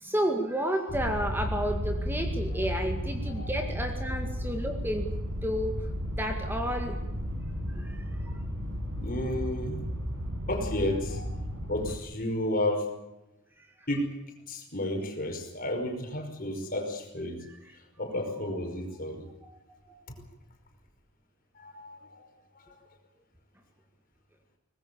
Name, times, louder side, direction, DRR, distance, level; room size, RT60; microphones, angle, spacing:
voice 1, 0.0-5.0 5.4-5.7 6.1-7.0 7.7-8.0 13.6-13.7 17.4-17.6 19.4-19.6 19.9-20.0, equal, 10° right, 4 dB, 2.1 m, -31 dB
sound 1, 0.9-12.0, equal, 80° right, 6.4 m, -33 dB
voice 2, 9.0-9.8 10.5-11.4 11.7-12.9 13.9-14.1 14.5-17.4 18.0-19.3 20.1-20.2 21.6-22.3 22.6-22.8, left 1 dB, 40° left, 4 dB, 5.4 m, -32 dB
24.0 x 20.0 x 7.0 m, 0.96 s
head